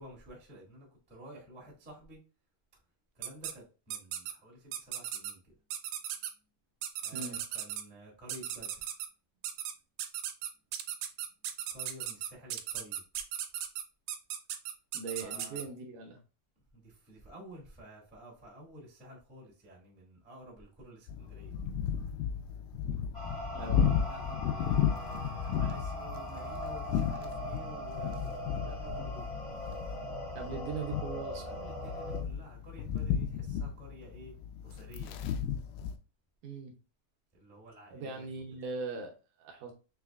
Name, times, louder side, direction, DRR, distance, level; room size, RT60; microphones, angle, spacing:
voice 1, 0.0-2.2 3.1-5.5 7.0-8.9 11.7-13.0 15.2-15.7 16.7-21.6 23.6-29.3 31.4-34.3 34.6-35.3 37.3-38.3, equal, 15° right, 0.3 m, -51 dB
sound 1, 3.2-3.5 3.9-4.3 4.7-5.3 5.7-6.3 6.8-7.8 8.3-9.1 9.4-9.7 10.0-15.6, right 10 dB, 90° right, 2.4 m, -37 dB
voice 2, 14.9-16.2 23.5-24.0 30.3-31.4 36.4-36.7 37.9-39.7, right 4 dB, 75° right, 2.1 m, -40 dB
sound 2, 21.1-35.9, left 8 dB, 80° left, 1.9 m, -34 dB
sound 3, 23.1-32.2, equal, 35° left, 0.6 m, -41 dB
5.8 x 3.1 x 2.4 m
omnidirectional pair, 4.1 m